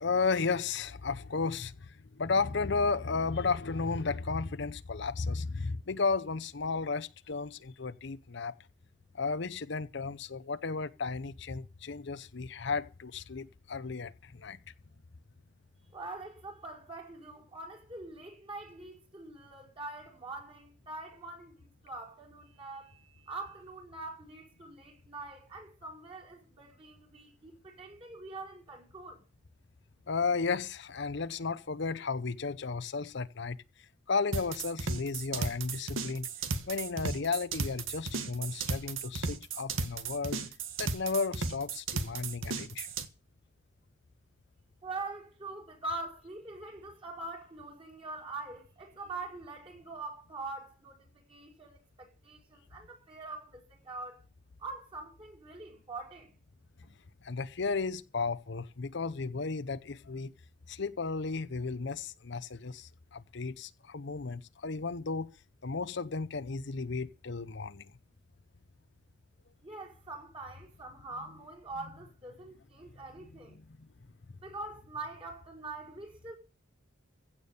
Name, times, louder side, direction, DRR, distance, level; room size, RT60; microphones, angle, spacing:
voice 1, 0.0-8.5 9.1-14.6 30.1-33.6 34.1-36.3 36.7-40.4 40.8-42.9 57.2-60.3 60.7-65.3 65.6-67.9 73.8-73.9, left 4 dB, 60° left, 0.7 m, -34 dB
voice 2, 15.9-29.2 44.8-54.2 54.6-56.3 56.8-56.9 69.6-73.6 74.4-76.4, right 2 dB, 30° right, 5.3 m, -44 dB
sound 1, 34.3-43.1, right 4 dB, 80° right, 1.6 m, -35 dB
16.0 x 7.3 x 7.0 m
head